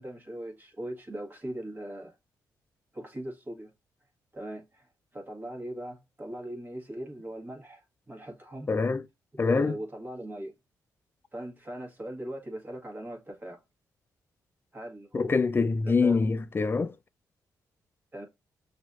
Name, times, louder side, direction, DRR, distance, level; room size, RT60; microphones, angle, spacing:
voice 1, 0.0-2.1 2.9-3.7 4.3-4.9 5.1-8.7 9.3-10.5 11.3-13.6 14.7-15.4 15.8-16.2 18.1-18.2, right 1 dB, 25° right, 1.5 m, -39 dB
voice 2, 8.7-9.0 9.4-9.8 15.1-16.9, left 4 dB, 30° left, 0.4 m, -25 dB
6.0 x 2.6 x 2.4 m
supercardioid pair, 60°, 8 cm